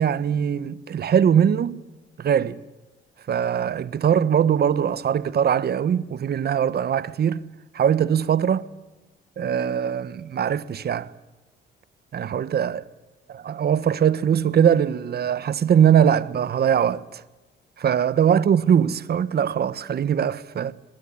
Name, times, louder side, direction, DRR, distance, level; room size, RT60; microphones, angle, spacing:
voice 1, 0.0-1.8 2.2-2.6 3.3-7.4 7.7-8.7 9.4-11.1 12.1-12.9 13.3-17.2 17.8-20.7, right 8 dB, 55° right, 1.2 m, -21 dB
24.0 x 20.0 x 10.0 m
cardioid pair, 90°, 20 cm